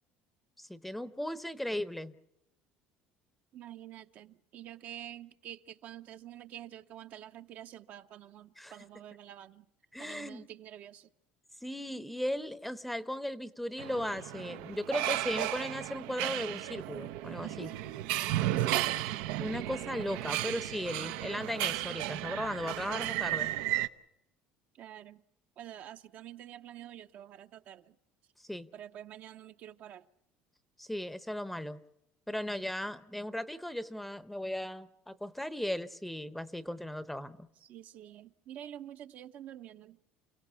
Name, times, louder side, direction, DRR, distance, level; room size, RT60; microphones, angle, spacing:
voice 1, 0.6-2.1 8.6-8.8 9.9-10.4 11.6-17.7 19.4-23.5 28.5-28.7 30.8-31.8 32.3-37.5, left 1 dB, 5° left, 0.8 m, -37 dB
voice 2, 3.5-9.7 10.0-11.1 18.6-18.9 24.7-25.2 25.6-28.0 28.7-30.1 37.6-40.0, right 11 dB, 45° right, 0.8 m, -48 dB
sound 1, 13.8-23.9, right 15 dB, 85° right, 0.8 m, -34 dB
29.0 x 17.0 x 7.0 m
cardioid pair, 150°, 4 cm